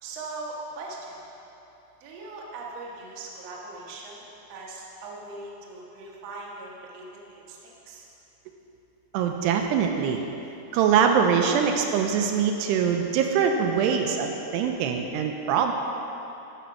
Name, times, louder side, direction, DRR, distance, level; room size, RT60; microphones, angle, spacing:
voice 1, 0.0-1.2 2.0-4.2 4.5-8.1, right 2 dB, 65° right, -3 dB, 1.6 m, -40 dB
voice 2, 9.1-10.2 10.7-15.7, right 7 dB, 80° right, 3 dB, 2.6 m, -23 dB
13.5 x 5.1 x 5.7 m, 2.9 s
omnidirectional pair, 4.9 m